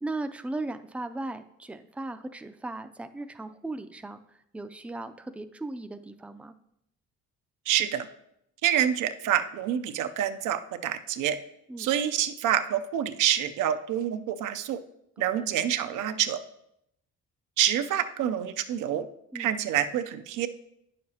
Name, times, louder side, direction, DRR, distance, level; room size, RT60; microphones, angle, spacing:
voice 1, 0.0-6.6 11.7-11.9 15.3-15.5 19.3-19.5, right 2 dB, 5° right, 9 dB, 0.3 m, -37 dB
voice 2, 7.7-8.1 8.6-11.4 11.8-14.8 15.2-16.4 17.6-19.1 19.3-20.5, right 10 dB, 85° right, 9 dB, 0.6 m, -27 dB
9.4 x 6.6 x 2.8 m, 0.78 s
cardioid pair, 90°, 30 cm